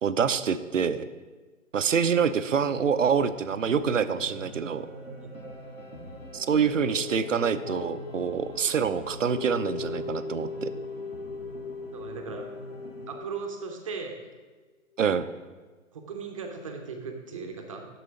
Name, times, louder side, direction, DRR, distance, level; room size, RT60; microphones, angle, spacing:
voice 1, 0.0-1.0 1.7-4.9 6.3-10.7 15.0-15.3, right 6 dB, 70° right, 14 dB, 0.6 m, -26 dB
sound 1, 2.5-13.2, equal, 85° left, 2.5 m, -45 dB
sound 2, 4.1-14.5 14.9-15.0, left 4 dB, 50° left, 1.9 m, -40 dB
voice 2, 11.9-12.5 13.1-14.3 15.9-17.9, right 5 dB, 25° right, 4 dB, 0.8 m, -37 dB
7.0 x 6.7 x 5.1 m, 1.3 s
figure-of-eight pair, 140°, 40 cm